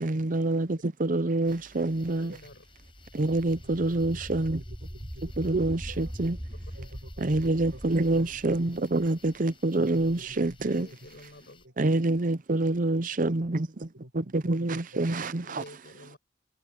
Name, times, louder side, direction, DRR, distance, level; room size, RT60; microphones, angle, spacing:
voice 1, 0.0-2.3 3.1-4.6 5.4-6.4 7.2-10.9 11.8-13.9 14.1-15.6, right 2 dB, 45° right, 0.7 m, -26 dB
sound 1, 1.4-11.7, left 3 dB, 30° left, 8.0 m, -56 dB
voice 2, 2.2-2.7 5.7-5.8 6.5-6.7 10.6-11.6 15.4-16.2, left 1 dB, 60° left, 7.1 m, -49 dB
sound 2, 2.6-9.4, equal, 5° right, 1.4 m, -41 dB
voice 3, 3.5-6.2 6.8-8.9 9.8-10.5 13.9-15.3, right 1 dB, 75° right, 6.3 m, -49 dB
head